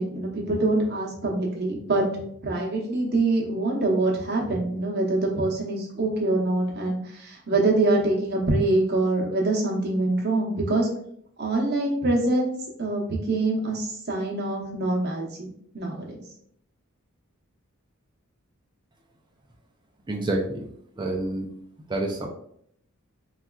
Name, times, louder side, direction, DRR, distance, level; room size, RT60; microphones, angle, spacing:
voice 1, 0.0-2.0 2.4-10.9 11.4-15.5 15.7-16.1, right 2 dB, 50° right, -1 dB, 0.8 m, -25 dB
voice 2, 20.1-20.7 21.0-21.5 21.9-22.3, right 2 dB, 20° right, 2 dB, 0.4 m, -28 dB
4.1 x 2.4 x 2.2 m, 0.68 s
head